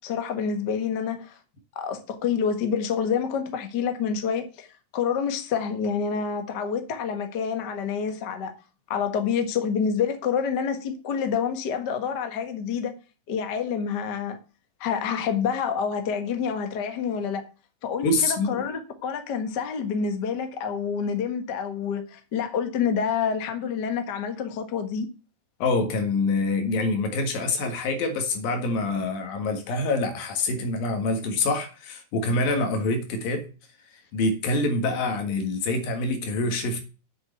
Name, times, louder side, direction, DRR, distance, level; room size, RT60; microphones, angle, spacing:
voice 1, 0.0-1.4 1.7-4.7 4.9-8.5 8.9-12.9 13.3-14.4 14.8-17.4 17.8-25.1, left 6 dB, 50° left, 1.3 m, -27 dB
voice 2, 18.0-18.7 25.6-33.5 34.1-36.8, left 2 dB, 90° left, 3.5 m, -26 dB
8.0 x 6.6 x 8.0 m
omnidirectional pair, 4.0 m